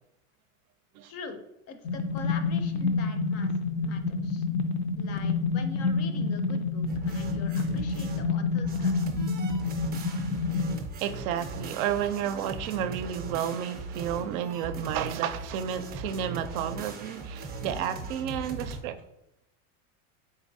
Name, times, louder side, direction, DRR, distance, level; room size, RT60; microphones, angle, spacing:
voice 1, 1.0-3.5 3.8-4.5 5.0-8.9, left 4 dB, 40° left, 0.4 m, -43 dB
sound 1, 1.8-10.8, left 4 dB, 85° left, 0.6 m, -28 dB
sound 2, 6.9-8.3 8.6-18.8, right 3 dB, 25° right, 0.5 m, -39 dB
voice 2, 11.0-19.0, right 9 dB, 80° right, 0.5 m, -31 dB
4.0 x 3.1 x 2.6 m
supercardioid pair, 120°, 41 cm